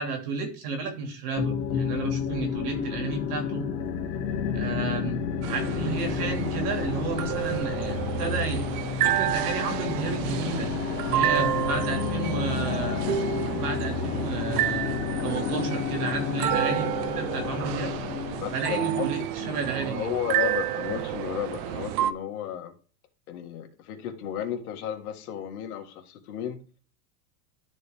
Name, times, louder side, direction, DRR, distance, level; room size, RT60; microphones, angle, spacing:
voice 1, 0.0-3.7 4.5-5.2 5.5-8.7 9.0-10.7 11.0-13.1 13.6-17.9 18.5-20.1, right 4 dB, 75° right, 5 dB, 2.8 m, -32 dB
sound 1, 1.4-18.8, left 6 dB, 45° left, 2.0 m, -31 dB
sound 2, 5.4-22.1, right 12 dB, 35° right, 0.4 m, -30 dB
voice 2, 18.4-19.1 19.4-22.7 23.3-26.6, left 10 dB, 65° left, 4 dB, 1.9 m, -33 dB
12.5 x 4.4 x 3.6 m, 0.37 s
supercardioid pair, 140°, 47 cm